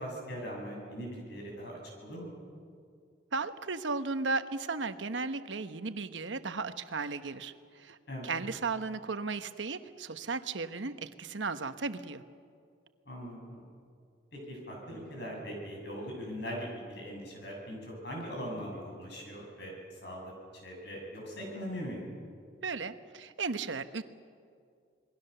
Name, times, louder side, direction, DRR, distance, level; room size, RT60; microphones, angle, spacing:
voice 1, 0.0-2.4 8.1-8.3 13.1-13.6 14.3-22.1, equal, 65° left, -1 dB, 7.7 m, -41 dB
voice 2, 3.3-8.0 8.2-12.2 22.6-24.0, right 4 dB, 85° right, 10 dB, 1.0 m, -35 dB
27.5 x 21.5 x 6.8 m, 2.3 s
head